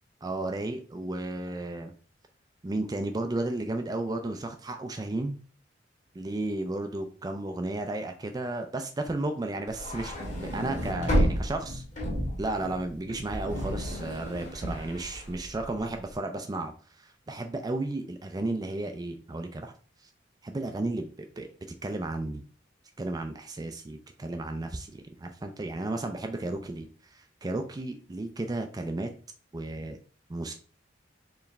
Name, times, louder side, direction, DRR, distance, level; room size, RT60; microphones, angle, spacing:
voice 1, 0.2-1.9 2.6-5.4 6.1-11.8 12.4-19.7 20.4-21.5 21.8-22.4 23.0-29.1 29.5-30.0 30.3-30.5, right 2 dB, 20° right, 5 dB, 0.4 m, -33 dB
sound 1, 9.7-16.0, equal, 40° left, 1.6 m, -31 dB
4.6 x 3.1 x 3.3 m, 0.41 s
head